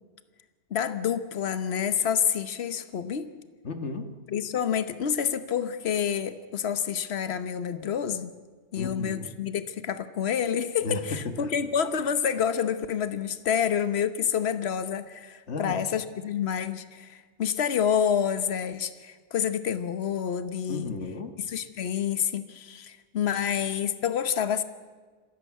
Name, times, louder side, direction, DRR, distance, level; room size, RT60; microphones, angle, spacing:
voice 1, 0.7-3.3 4.3-8.3 8.7-20.9 21.5-24.6, left 8 dB, 70° left, 11 dB, 1.3 m, -28 dB
voice 2, 3.6-4.2 8.8-9.4 10.8-11.5 15.5-15.8 20.7-21.4, left 3 dB, 90° left, 8 dB, 1.7 m, -34 dB
26.0 x 16.0 x 8.3 m, 1.4 s
omnidirectional pair, 1.1 m